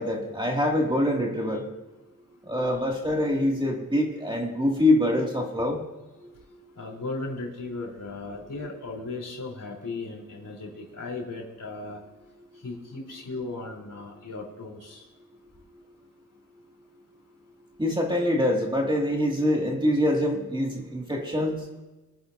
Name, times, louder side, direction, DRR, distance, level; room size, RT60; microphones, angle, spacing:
voice 1, 0.0-1.6 2.4-5.8 6.2-6.6 17.8-21.6, left 1 dB, 15° right, -1 dB, 2.3 m, -25 dB
voice 2, 6.8-12.0 12.6-15.0, left 3 dB, 65° left, -1 dB, 3.9 m, -36 dB
23.5 x 10.0 x 2.7 m, 1.1 s
wide cardioid pair, 90°, 34 cm